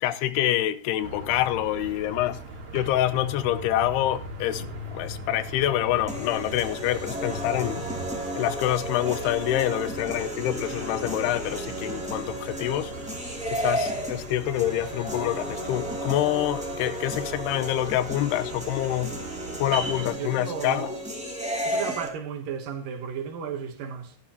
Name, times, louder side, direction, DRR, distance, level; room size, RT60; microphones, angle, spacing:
voice 1, 0.0-2.4 2.7-4.6 4.9-7.9 8.4-12.9 13.5-19.2 19.6-20.9, left 13 dB, 90° left, 2.8 m, -26 dB
sound 1, 1.0-20.1, right 2 dB, 45° right, 2.6 m, -40 dB
sound 2, 6.1-22.1, equal, 5° right, 1.6 m, -33 dB
voice 2, 20.1-21.0 21.6-24.2, right 7 dB, 65° right, 2.7 m, -34 dB
13.5 x 11.5 x 2.9 m
omnidirectional pair, 4.6 m